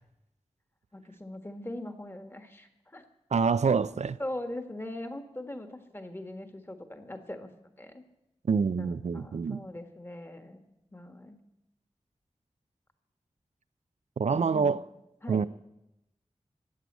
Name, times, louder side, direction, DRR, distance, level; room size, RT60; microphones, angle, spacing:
voice 1, 0.9-3.0 4.2-8.0 8.8-10.6 10.9-11.4 14.3-14.8 15.2-15.4, left 1 dB, 20° left, 1.6 m, -41 dB
voice 2, 3.3-4.2 8.5-9.6 14.2-14.8 15.3-15.5, right 5 dB, 75° right, 0.5 m, -26 dB
14.0 x 8.6 x 8.2 m
wide cardioid pair, 80°, 12 cm